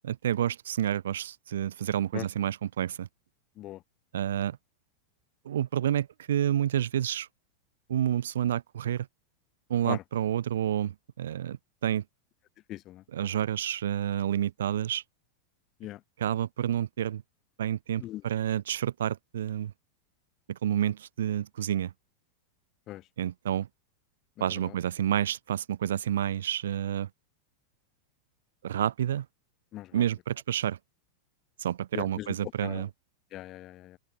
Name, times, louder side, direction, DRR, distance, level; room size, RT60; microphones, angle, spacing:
voice 1, 0.0-3.1 4.1-4.6 5.5-7.3 7.9-9.1 9.7-11.6 11.8-12.0 13.1-15.0 16.2-17.2 17.6-19.7 20.5-21.9 23.2-23.7 24.4-27.1 28.6-29.3 29.9-30.8 31.6-32.9, right 10 dB, 60° right, 0.5 m, -29 dB
voice 2, 12.7-13.0 15.8-16.0 18.0-18.2 22.9-23.0 24.5-24.7 29.7-30.0 31.9-32.8 33.3-34.0, left 15 dB, 35° left, 0.6 m, -39 dB
open air
figure-of-eight pair, 90°, 0 cm